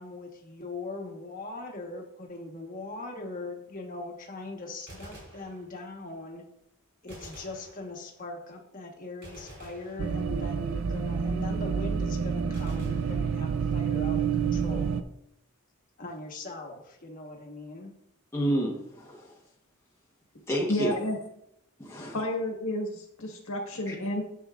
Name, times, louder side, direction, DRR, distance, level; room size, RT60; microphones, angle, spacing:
voice 1, 0.0-6.4 7.0-15.1 16.0-17.9, left 2 dB, 40° left, 1 dB, 1.3 m, -40 dB
Gunshot gunfire, 4.9-6.1 7.1-8.3 9.2-10.6 12.5-13.9, right 1 dB, 50° right, 3.3 m, -49 dB
sound 1, 10.0-15.0, right 6 dB, 65° right, 0.4 m, -28 dB
voice 2, 18.3-19.3 20.5-20.9 21.8-22.2 23.9-24.0, right 1 dB, 10° left, -3 dB, 1.1 m, -29 dB
voice 3, 20.7-21.2 22.1-24.2, left 1 dB, 65° left, 1 dB, 1.5 m, -31 dB
10.0 x 7.0 x 2.5 m, 0.77 s
head